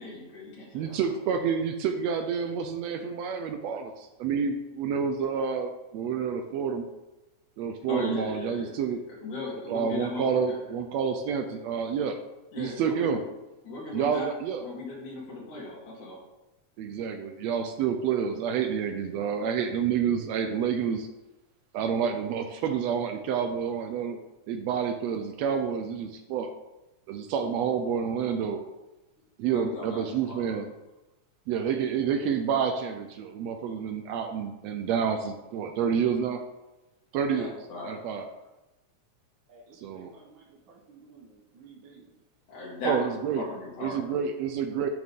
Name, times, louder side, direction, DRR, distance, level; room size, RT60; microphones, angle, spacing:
voice 1, 0.0-1.0 7.9-8.8 9.1-10.6 12.5-13.2 13.6-14.3 14.6-16.2 29.4-30.6 37.3-38.0 42.5-44.1, left 2 dB, 80° left, -5 dB, 3.4 m, -37 dB
voice 2, 0.7-6.8 7.6-9.0 9.7-12.2 12.6-13.2 13.9-14.6 16.8-21.1 21.7-24.2 24.5-26.5 27.1-28.6 29.4-30.7 31.5-36.4 37.1-37.5 37.8-38.3 39.7-40.1 42.8-43.4 43.8-44.9, right 7 dB, 75° right, 6 dB, 1.6 m, -29 dB
voice 3, 39.5-42.1, right 4 dB, 45° right, -4 dB, 1.9 m, -54 dB
10.5 x 6.1 x 3.6 m, 1.0 s
omnidirectional pair, 3.4 m